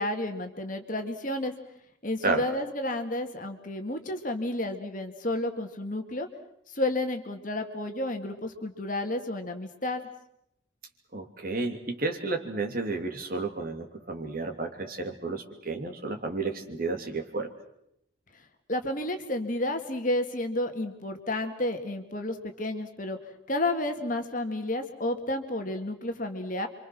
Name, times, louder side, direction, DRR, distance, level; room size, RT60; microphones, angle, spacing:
voice 1, 0.0-1.5 2.0-6.3 6.7-10.1 18.7-23.2 23.5-26.7, left 1 dB, 40° left, 5 dB, 2.2 m, -31 dB
voice 2, 11.1-17.5, right 3 dB, 45° right, 4 dB, 3.0 m, -32 dB
28.0 x 25.5 x 6.2 m, 0.77 s
head